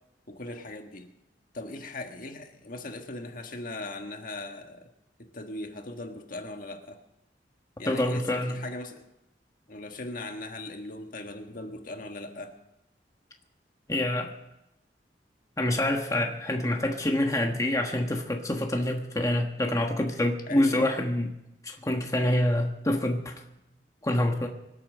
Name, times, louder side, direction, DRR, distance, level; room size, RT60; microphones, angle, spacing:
voice 1, 0.3-1.1 1.5-4.9 5.2-7.0 7.8-9.0 9.7-12.5 20.5-20.9, left 2 dB, 50° left, 5 dB, 1.6 m, -39 dB
voice 2, 7.9-8.6 13.9-14.3 15.6-21.3 21.6-23.3 24.0-24.5, left 1 dB, 20° left, 2 dB, 1.3 m, -26 dB
24.5 x 8.6 x 6.5 m, 0.88 s
head